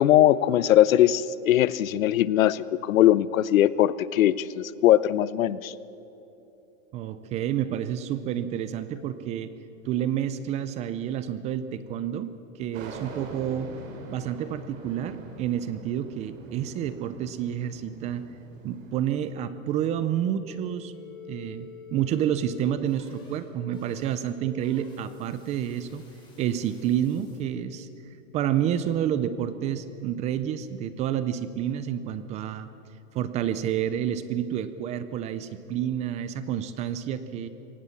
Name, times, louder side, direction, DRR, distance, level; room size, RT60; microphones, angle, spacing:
voice 1, 0.0-5.7, left 12 dB, 80° left, 18 dB, 0.8 m, -20 dB
voice 2, 6.9-9.5 9.8-12.3 12.6-13.7 14.1-18.2 18.6-20.9 21.3-26.0 26.4-27.9 28.3-32.7 33.1-37.5, right 10 dB, 20° right, 13 dB, 0.4 m, -29 dB
sound 1, 12.7-19.0, right 3 dB, 75° right, 4.0 m, -43 dB
sound 2, 20.4-27.5, left 4 dB, 10° left, 5.4 m, -47 dB
23.0 x 18.0 x 7.1 m, 3.0 s
supercardioid pair, 145°, 40 cm